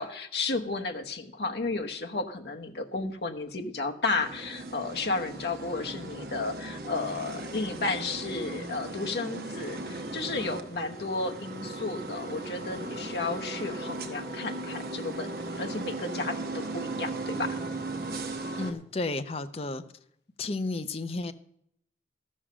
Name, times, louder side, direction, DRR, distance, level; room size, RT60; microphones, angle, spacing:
voice 1, 0.0-15.3 15.5-17.6, left 3 dB, 70° left, 4 dB, 1.0 m, -33 dB
sound 1, 4.1-18.7, right 2 dB, 55° right, 1.0 m, -37 dB
voice 2, 18.6-19.8 20.4-21.3, left 2 dB, 35° left, 10 dB, 0.6 m, -32 dB
13.5 x 6.4 x 6.1 m, 0.72 s
head